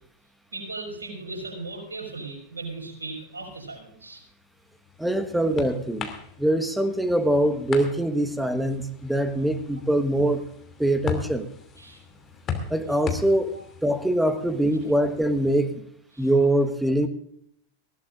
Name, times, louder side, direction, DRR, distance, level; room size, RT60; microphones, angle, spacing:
voice 1, 0.5-4.2 11.8-12.0 13.5-13.6 14.4-14.5 16.1-16.3, right 3 dB, 75° right, 1 dB, 5.7 m, -37 dB
sound 1, 4.5-15.6, left 6 dB, 30° left, 2.7 m, -38 dB
voice 2, 5.0-6.1 6.4-10.4 10.8-11.5 12.7-13.5 13.8-15.8 16.2-17.1, right 1 dB, 5° right, 9 dB, 1.4 m, -23 dB
19.5 x 17.0 x 2.5 m, 0.67 s
figure-of-eight pair, 90°, 0 cm